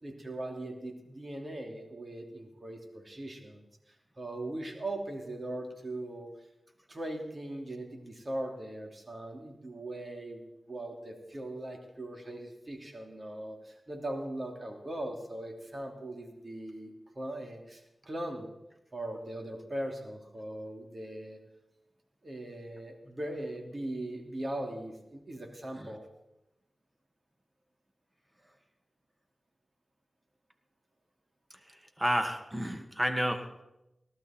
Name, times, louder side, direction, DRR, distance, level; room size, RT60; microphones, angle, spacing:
voice 1, 0.0-6.3 6.9-18.5 18.9-21.4 22.2-26.1, right 1 dB, 45° right, 3 dB, 3.0 m, -40 dB
voice 2, 31.7-33.6, equal, 20° right, 6 dB, 2.1 m, -31 dB
18.5 x 12.5 x 4.5 m, 0.90 s
cardioid pair, 40°, 0 cm